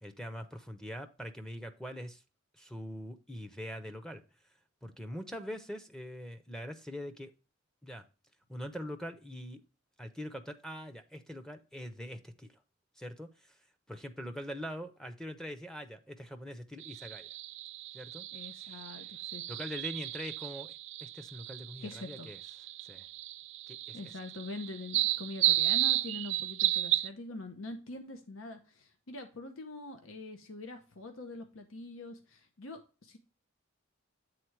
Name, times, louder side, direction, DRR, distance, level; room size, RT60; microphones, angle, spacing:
voice 1, 0.0-2.2 2.6-4.2 4.8-7.3 7.8-8.0 8.5-9.6 10.0-12.5 13.0-13.6 13.9-17.3 17.9-18.3 18.6-18.8 19.5-20.7 21.0-22.4 22.9-23.1 23.7-24.1, equal, 5° left, 5 dB, 0.6 m, -43 dB
sound 1, 16.8-27.1, right 15 dB, 65° right, 0.3 m, -33 dB
voice 2, 18.3-19.4 21.8-22.3 23.9-33.2, left 2 dB, 90° left, 6 dB, 0.9 m, -44 dB
7.8 x 3.7 x 4.5 m, 0.33 s
head